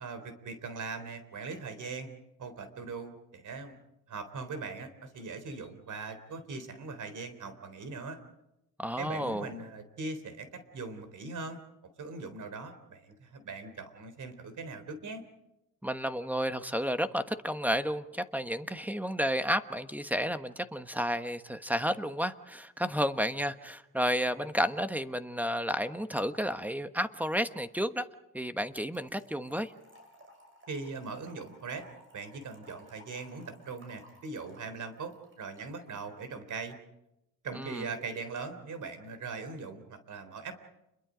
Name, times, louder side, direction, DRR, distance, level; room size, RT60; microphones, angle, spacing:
voice 1, 0.0-2.1 2.4-3.8 4.1-8.2 9.0-11.6 12.0-15.2 30.7-31.9 32.1-36.8 37.4-40.5, right 4 dB, 60° right, 10 dB, 3.7 m, -40 dB
voice 2, 8.8-9.5 15.8-28.1 28.3-29.7 37.5-37.9, equal, 5° right, 10 dB, 1.2 m, -31 dB
Trickle dribble / Fill (with liquid), 28.9-36.0, equal, 35° right, 7.3 m, -58 dB
30.0 x 22.5 x 5.1 m, 0.89 s
cardioid pair, 100°, 34 cm